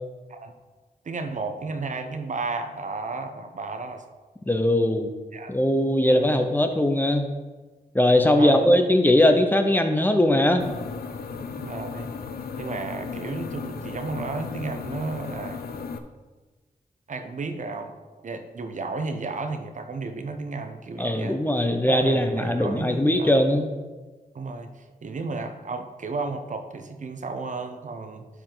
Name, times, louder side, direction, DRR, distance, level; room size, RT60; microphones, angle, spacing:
voice 1, 1.0-4.0 5.3-5.5 6.0-6.4 8.4-8.7 11.5-12.1 12.6-15.6 17.1-17.9 18.2-21.4 21.9-23.5 24.3-24.7 25.0-28.3, right 3 dB, 55° right, 7 dB, 0.8 m, -33 dB
voice 2, 4.5-5.1 5.5-7.2 7.9-10.6 21.0-23.7, left 1 dB, 10° left, 6 dB, 0.8 m, -20 dB
sound 1, 10.6-16.0, left 5 dB, 80° left, 0.6 m, -35 dB
11.5 x 4.9 x 3.9 m, 1.3 s
cardioid pair, 75°, 15 cm